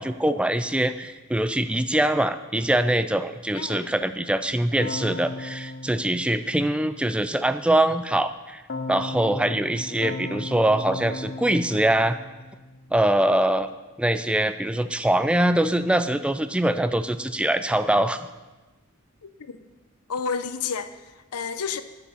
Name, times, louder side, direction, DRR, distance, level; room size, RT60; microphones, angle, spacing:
voice 1, 0.0-8.6 8.9-12.2 12.9-13.7 14.0-18.3, right 1 dB, 5° right, 11 dB, 0.4 m, -23 dB
voice 2, 3.5-3.9 19.2-19.6 20.1-20.9 21.3-21.8, left 6 dB, 85° left, 11 dB, 0.7 m, -30 dB
Keyboard (musical), 4.8-7.1 8.7-13.0, left 2 dB, 45° left, 0.8 m, -36 dB
9.8 x 8.7 x 6.9 m, 1.2 s
head